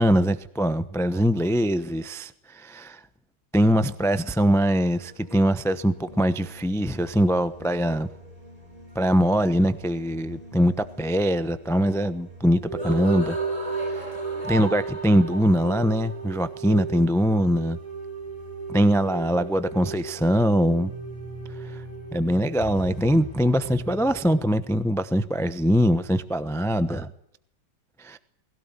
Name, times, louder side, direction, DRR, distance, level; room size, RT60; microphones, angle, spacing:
voice 1, 0.0-3.0 3.5-8.1 8.9-13.4 13.8-14.1 14.4-17.8 18.7-20.9 21.6-21.8 22.1-27.1 28.0-28.2, equal, 5° left, 12 dB, 0.4 m, -22 dB
sound 1, 4.8-24.4, right 3 dB, 20° right, 4.7 m, -36 dB
21.0 x 17.0 x 9.0 m, 0.74 s
omnidirectional pair, 2.1 m